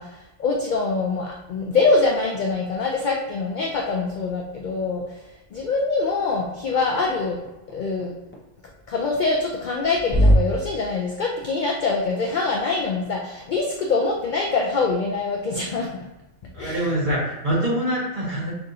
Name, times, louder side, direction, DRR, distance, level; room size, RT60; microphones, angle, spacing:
voice 1, 0.0-7.4 7.7-8.2 8.9-16.0 16.6-16.9, left 3 dB, 65° left, 0 dB, 0.4 m, -24 dB
sound 1, 3.7-10.3, equal, 15° left, 0.5 m, -28 dB
voice 2, 16.5-18.5, equal, 40° right, -6 dB, 1.3 m, -25 dB
5.7 x 2.5 x 2.7 m, 0.97 s
omnidirectional pair, 1.3 m